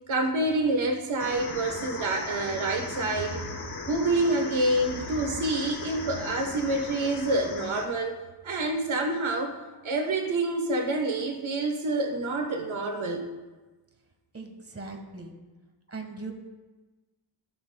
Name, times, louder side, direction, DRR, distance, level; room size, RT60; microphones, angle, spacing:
voice 1, 0.1-3.5 3.8-8.2 8.4-9.6 9.8-13.2, right 2 dB, 80° right, 3 dB, 1.1 m, -27 dB
sound 1, 1.2-7.9, left 4 dB, 50° left, 1.1 m, -38 dB
voice 2, 14.3-15.3 15.9-16.3, right 3 dB, 30° right, 3 dB, 1.3 m, -39 dB
16.0 x 6.8 x 2.2 m, 1.2 s
wide cardioid pair, 100°, 47 cm